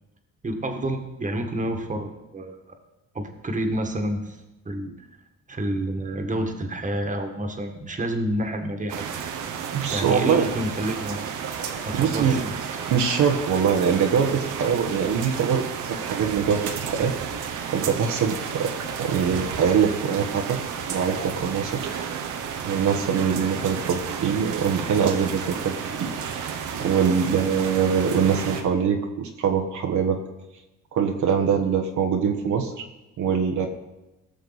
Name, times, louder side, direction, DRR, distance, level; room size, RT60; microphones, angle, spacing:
voice 1, 0.4-2.8 3.1-4.4 4.6-5.1 5.5-9.0 9.9-11.3 11.8-12.6, right 1 dB, 25° right, 5 dB, 1.7 m, -29 dB
sound 1, 8.9-28.6, right 7 dB, 90° right, 1.2 m, -32 dB
voice 2, 9.7-10.5 11.9-12.4 12.9-15.6 16.0-17.5 17.7-18.7 19.0-20.6 20.8-21.8 22.7-25.9 26.2-26.4 26.8-30.2 30.9-32.7 33.2-33.7, right 7 dB, 75° right, 3 dB, 1.3 m, -23 dB
18.0 x 6.6 x 4.1 m, 1.0 s
cardioid pair, 90°, 30 cm